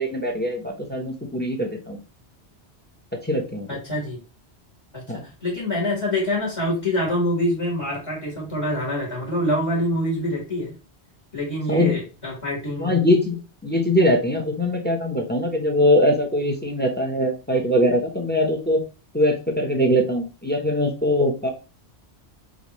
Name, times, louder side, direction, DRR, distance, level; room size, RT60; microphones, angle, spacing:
voice 1, 0.0-2.0 3.2-3.8 5.1-5.2 11.7-12.0 12.8-18.8 19.1-21.5, left 1 dB, 10° left, 3 dB, 0.6 m, -22 dB
voice 2, 3.7-4.2 4.9-10.7 11.3-13.0, left 1 dB, 25° left, -3 dB, 1.5 m, -25 dB
5.1 x 2.6 x 3.0 m, 0.32 s
omnidirectional pair, 1.1 m